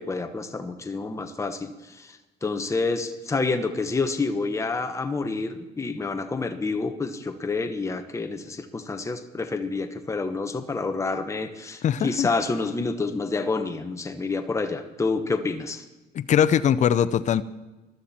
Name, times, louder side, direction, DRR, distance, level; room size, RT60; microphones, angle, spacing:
voice 1, 0.0-15.8, left 3 dB, 15° left, 6 dB, 1.2 m, -28 dB
voice 2, 11.8-12.3 16.1-17.4, left 9 dB, 45° left, 13 dB, 0.7 m, -21 dB
22.0 x 12.5 x 4.4 m, 1.1 s
cardioid pair, 110°, 17 cm